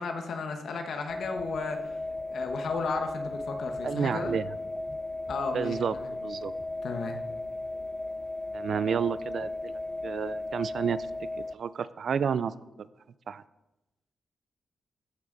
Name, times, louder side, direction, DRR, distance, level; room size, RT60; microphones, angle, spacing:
voice 1, 0.0-1.9 2.3-4.4 5.3-6.1 6.8-7.2, left 4 dB, 70° left, 5 dB, 1.2 m, -34 dB
sound 1, 1.1-11.5, left 2 dB, 10° left, 0.3 m, -36 dB
voice 2, 3.8-4.5 5.5-6.0 6.2-6.5 8.5-11.0 11.5-12.5 13.3-13.4, right 7 dB, 65° right, 16 dB, 0.4 m, -30 dB
14.0 x 6.1 x 3.9 m, 0.97 s
wide cardioid pair, 120°, 0 cm